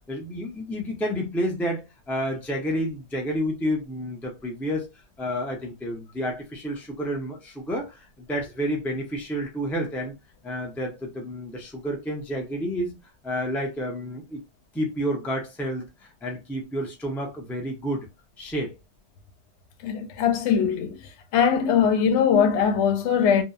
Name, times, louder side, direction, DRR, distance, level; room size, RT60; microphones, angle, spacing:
voice 1, 0.1-4.9 5.2-8.0 8.3-10.1 10.4-13.0 13.2-14.4 14.7-18.1 18.4-18.7, equal, 5° left, 0.3 m, -30 dB
voice 2, 19.8-21.0 21.3-23.4, left 7 dB, 80° left, 0.9 m, -21 dB
2.8 x 2.0 x 2.3 m
omnidirectional pair, 1.1 m